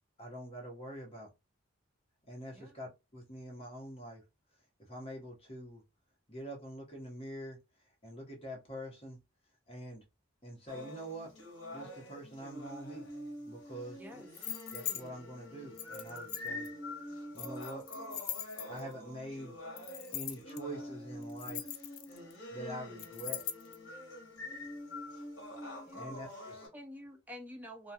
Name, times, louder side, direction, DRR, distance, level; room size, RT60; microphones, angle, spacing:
voice 1, 0.2-1.3 2.3-4.2 4.9-5.8 6.3-7.6 8.0-9.2 9.7-10.0 10.4-11.3 11.7-13.1 13.5-14.0 14.7-16.7 17.3-17.8 18.7-19.5 20.1-21.7 22.5-23.4 26.0-26.7, right 1 dB, 30° left, 0.9 m, -45 dB
sound 1, 10.7-26.7, left 1 dB, 65° left, 1.0 m, -46 dB
voice 2, 14.0-14.3 25.9-26.1 26.7-27.9, equal, 10° right, 0.4 m, -48 dB
sound 2, 14.3-15.0 15.8-16.7 17.4-18.9 19.8-20.6 21.2-22.3 23.0-23.8, left 11 dB, 90° left, 0.4 m, -40 dB
2.3 x 2.3 x 2.7 m
head